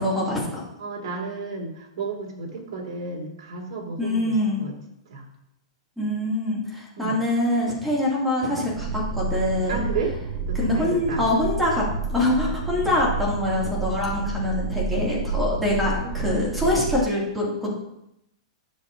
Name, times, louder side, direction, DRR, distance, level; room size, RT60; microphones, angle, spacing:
voice 1, 0.0-0.6 4.0-4.6 6.0-9.8 10.5-11.9 12.1-17.7, left 1 dB, ahead, -6 dB, 2.4 m, -24 dB
voice 2, 0.8-4.7 5.1-5.3 7.0-7.2 9.7-11.2 15.4-16.2, right 4 dB, 65° right, -2 dB, 2.4 m, -33 dB
sound 1, 8.7-17.0, right 3 dB, 35° right, 1.2 m, -29 dB
9.9 x 6.7 x 2.7 m, 0.81 s
hypercardioid pair, 155°, 3 cm